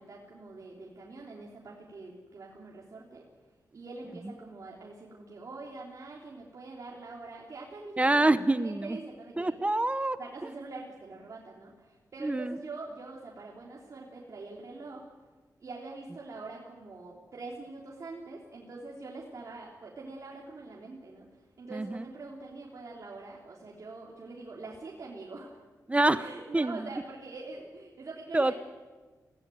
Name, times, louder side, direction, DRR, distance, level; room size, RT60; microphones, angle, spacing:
voice 1, 0.0-3.3 3.7-8.2 8.5-9.5 10.2-15.0 15.6-21.3 21.6-25.6 26.1-28.6, right 3 dB, 55° right, -3 dB, 3.3 m, -44 dB
voice 2, 8.0-9.0 9.4-10.2 12.2-12.6 21.7-22.1 25.9-26.3 26.5-26.8 28.3-28.5, right 2 dB, 20° right, 13 dB, 0.8 m, -26 dB
24.0 x 17.0 x 9.3 m, 1.3 s
wide cardioid pair, 85°, 6 cm